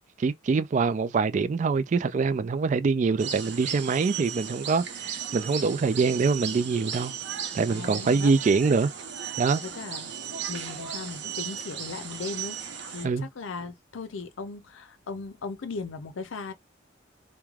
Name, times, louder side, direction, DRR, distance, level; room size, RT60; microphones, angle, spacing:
voice 1, 0.2-7.1 7.5-8.9 9.4-9.6 13.0-13.3, right 4 dB, 40° right, 0.3 m, -24 dB
sound 1, 3.2-13.0, right 8 dB, 65° right, 0.7 m, -36 dB
voice 2, 7.7-8.3 9.6-10.1 10.5-16.5, left 4 dB, 85° left, 0.5 m, -38 dB
3.1 x 2.2 x 2.3 m
head